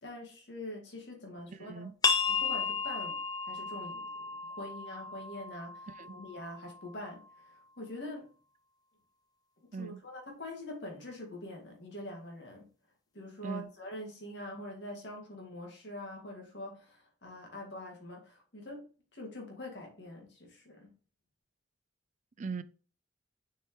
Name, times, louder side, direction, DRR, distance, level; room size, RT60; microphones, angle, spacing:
voice 1, 0.0-1.9 2.3-3.2 3.5-4.2 4.4-8.3 9.7-12.7 13.1-18.9 19.1-20.9, left 1 dB, 65° left, 2.0 m, -44 dB
voice 2, 1.6-1.9 6.0-6.2 9.7-10.0 13.4-13.7 22.4-22.6, right 5 dB, 40° right, 0.4 m, -39 dB
sound 1, 2.0-7.4, left 5 dB, 20° left, 0.6 m, -34 dB
6.4 x 4.7 x 3.1 m
head